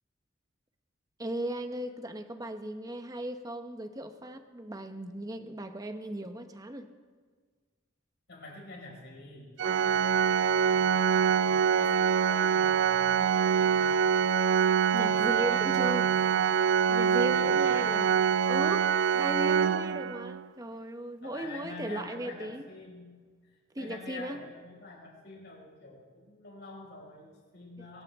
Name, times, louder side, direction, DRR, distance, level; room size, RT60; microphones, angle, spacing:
voice 1, 1.2-6.9 14.9-16.1 16.9-18.0 18.5-18.9 19.1-22.7 23.7-24.4 27.8-27.9, right 1 dB, 20° right, 7 dB, 0.9 m, -37 dB
voice 2, 8.3-9.5 9.8-14.1 14.9-16.5 17.2-18.2 21.2-23.1 23.8-28.0, left 2 dB, 60° left, -2 dB, 5.4 m, -46 dB
Organ, 9.6-20.4, right 7 dB, 60° right, 0.4 m, -25 dB
22.5 x 15.0 x 3.6 m, 1.5 s
head